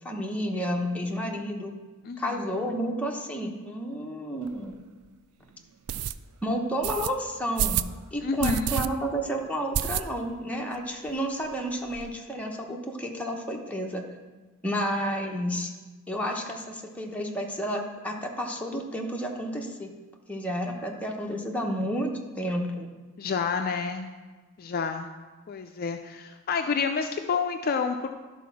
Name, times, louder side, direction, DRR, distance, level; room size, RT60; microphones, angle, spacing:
voice 1, 0.0-1.7 2.2-4.8 6.4-7.8 8.1-14.0 14.6-15.7 16.1-19.9 20.3-22.9, equal, 5° left, 0 dB, 0.9 m, -31 dB
voice 2, 2.0-2.5 8.2-8.7 23.2-24.1 24.6-25.1 25.5-28.1, left 5 dB, 45° left, 6 dB, 0.4 m, -29 dB
sound 1, 4.5-4.6 5.0-5.1 5.9-6.1 6.8-7.1 7.6-7.9 8.4-8.9 9.2-9.3 9.7-10.4 10.7-10.8 11.1-11.2 11.4-12.1, right 10 dB, 75° right, 0.3 m, -28 dB
11.5 x 4.2 x 5.9 m, 1.3 s
head